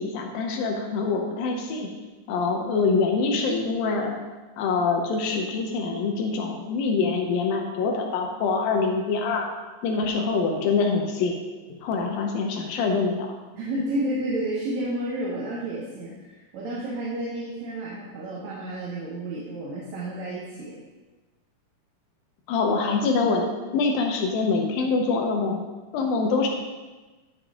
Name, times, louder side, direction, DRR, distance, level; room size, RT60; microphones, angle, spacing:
voice 1, 0.0-1.9 2.3-4.2 4.6-9.5 9.8-11.4 11.8-13.3 22.5-23.5 23.7-25.6 25.9-26.5, left 4 dB, 85° left, 2 dB, 2.7 m, -25 dB
voice 2, 13.5-20.7, right 1 dB, 65° right, -4 dB, 2.2 m, -31 dB
11.5 x 6.7 x 3.7 m, 1.2 s
omnidirectional pair, 4.0 m